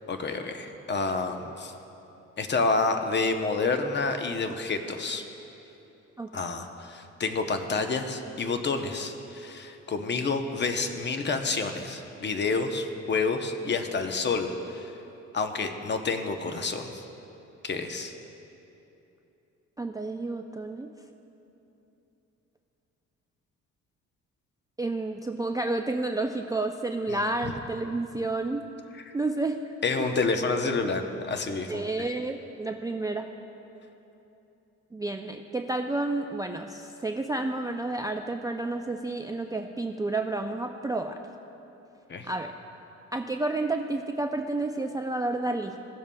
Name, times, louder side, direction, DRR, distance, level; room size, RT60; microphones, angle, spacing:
voice 1, 0.1-1.7 2.4-5.2 6.3-14.9 15.3-16.9 17.6-18.1 27.1-27.5 29.1-29.2 29.8-31.8 42.1-42.3, left 4 dB, 35° left, 6 dB, 0.7 m, -29 dB
voice 2, 19.8-20.9 24.8-28.6 29.1-29.7 30.0-30.1 31.7-33.3 34.9-41.2 42.3-42.5 43.1-45.7, right 2 dB, 15° right, 5 dB, 0.3 m, -30 dB
16.5 x 7.0 x 2.2 m, 3.0 s
cardioid pair, 90°, 30 cm